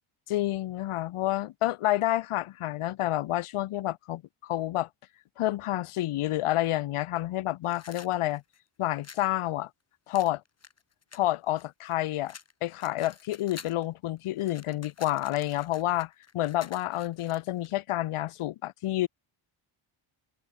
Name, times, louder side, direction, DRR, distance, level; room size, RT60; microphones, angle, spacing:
voice 1, 0.3-4.9 5.4-8.4 8.8-9.7 10.1-10.4 11.1-19.1, left 15 dB, 85° left, 2.8 m, -29 dB
sound 1, 7.6-9.3 10.1-11.9 12.3-13.9 14.2-17.7, left 6 dB, 30° left, 5.2 m, -49 dB
cardioid pair, 155°, 49 cm